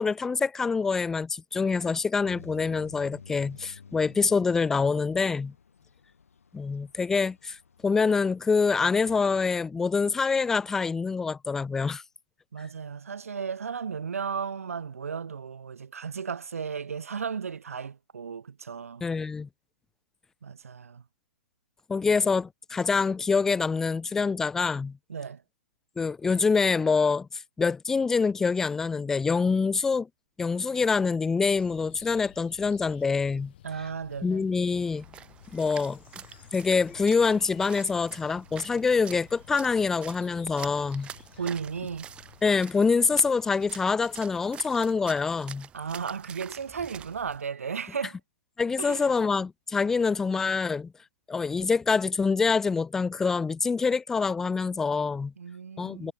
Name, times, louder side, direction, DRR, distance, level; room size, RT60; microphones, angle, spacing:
voice 1, 0.0-5.5 6.5-7.6 7.8-12.0 19.0-19.5 21.9-25.0 26.0-27.3 27.6-30.1 30.4-33.5 34.2-35.0 35.5-36.0 36.5-41.1 42.4-45.7 48.6-50.9 51.3-55.3 55.8-56.1, left 5 dB, 5° left, 0.4 m, -25 dB
sound 1, 2.2-9.2, left 6 dB, 85° left, 4.8 m, -51 dB
voice 2, 12.5-19.0 20.4-21.0 25.1-25.4 33.6-34.5 41.4-42.1 45.7-48.2 48.8-49.1 55.4-56.1, right 6 dB, 85° right, 1.8 m, -35 dB
sound 2, 31.5-42.4, left 13 dB, 45° left, 3.1 m, -53 dB
Splash splatter, 34.7-47.4, right 9 dB, 15° right, 3.7 m, -47 dB
hypercardioid pair, 155°, 7 cm